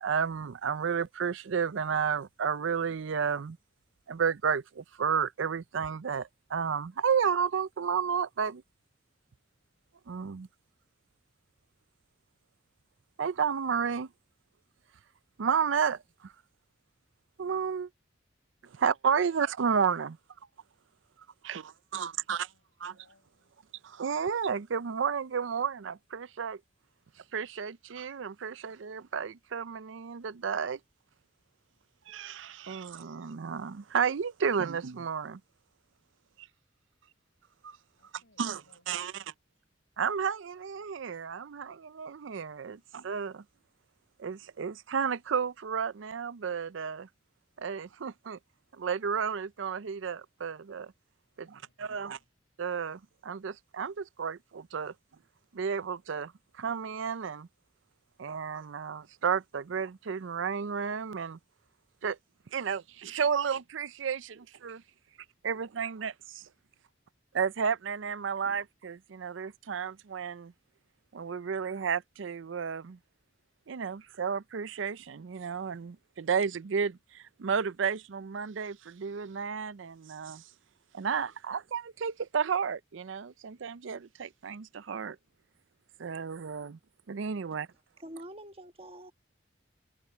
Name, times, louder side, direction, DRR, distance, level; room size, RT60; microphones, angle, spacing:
voice 1, 0.0-3.6 4.1-8.6 10.1-10.5 13.2-14.1 15.4-16.3 17.4-17.9 18.7-20.2 21.4-22.5 22.8-22.9 23.8-26.6 27.3-30.8 32.1-35.4 36.4-36.5 37.6-37.8 38.4-38.6 38.9-39.1 40.0-43.4 44.2-47.1 47.6-48.4 48.8-50.9 51.4-52.2 52.6-54.9 55.5-56.3 56.6-57.5 58.2-61.4 62.0-62.2 62.5-64.8 65.4-66.4 67.3-70.5 71.1-73.0 73.7-80.4 80.9-85.2 86.0-86.8 87.1-87.7, right 6 dB, 90° right, 0.5 m, -32 dB
voice 2, 22.2-23.6 38.0-39.2 42.7-42.9 51.3-52.3 66.7-66.9, left 2 dB, 90° left, 5.8 m, -69 dB
voice 3, 88.0-89.1, right 1 dB, 30° right, 1.3 m, -46 dB
head